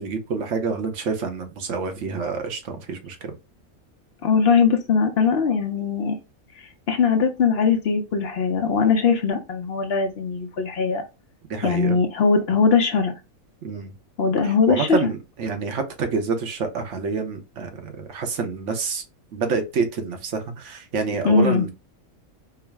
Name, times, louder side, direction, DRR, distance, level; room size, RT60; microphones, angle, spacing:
voice 1, 0.0-3.4 11.5-12.0 13.6-13.9 14.4-19.0 19.3-21.7, right 5 dB, 60° right, 1.1 m, -27 dB
voice 2, 4.2-6.2 6.9-11.0 11.6-13.1 14.2-15.0 21.2-21.6, left 5 dB, 55° left, 0.7 m, -20 dB
4.6 x 2.0 x 3.3 m
omnidirectional pair, 1.5 m